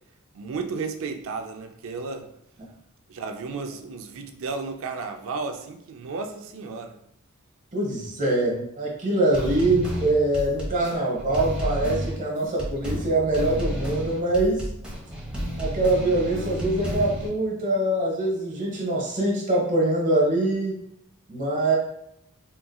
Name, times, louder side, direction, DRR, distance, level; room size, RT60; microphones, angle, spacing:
voice 1, 0.3-2.3 3.1-7.0, right 4 dB, 65° right, 6 dB, 0.4 m, -33 dB
voice 2, 7.7-14.7 15.6-20.7 21.3-21.8, right 2 dB, 35° right, -3 dB, 1.0 m, -24 dB
sound 1, 9.3-17.3, equal, 5° right, 0.9 m, -31 dB
3.7 x 2.8 x 2.3 m, 0.77 s
head